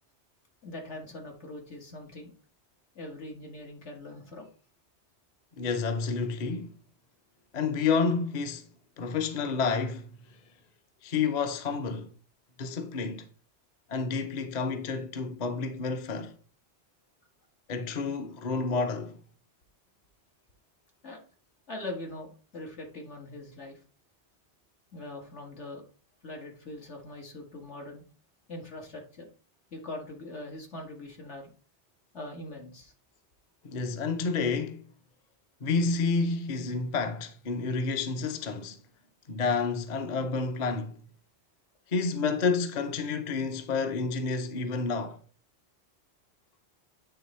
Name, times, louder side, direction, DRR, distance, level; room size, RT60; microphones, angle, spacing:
voice 1, 0.6-2.3 3.0-4.5 21.0-21.2 21.7-23.8 24.9-25.8 26.2-28.0 28.5-29.3 29.7-31.5 32.1-32.9, left 2 dB, 80° left, 1.9 m, -42 dB
voice 2, 5.6-6.7 7.5-8.7 9.0-10.1 11.0-12.1 12.6-13.3 13.9-16.3 17.7-19.2 33.6-34.8 35.6-38.8 39.3-41.0 41.9-45.2, left 4 dB, 45° left, 0.7 m, -29 dB
8.8 x 3.3 x 4.1 m
omnidirectional pair, 1.2 m